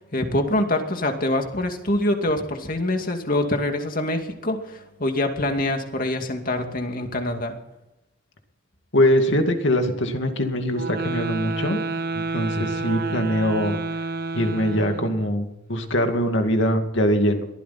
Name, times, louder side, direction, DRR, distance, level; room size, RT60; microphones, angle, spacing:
voice 1, 0.1-7.6, left 1 dB, 40° left, 4 dB, 2.5 m, -25 dB
voice 2, 8.9-11.8 12.1-13.8 14.3-17.5, equal, 60° left, 5 dB, 2.4 m, -22 dB
sound 1, 10.7-15.3, right 3 dB, 50° right, 1.3 m, -29 dB
22.0 x 15.0 x 4.3 m, 0.94 s
head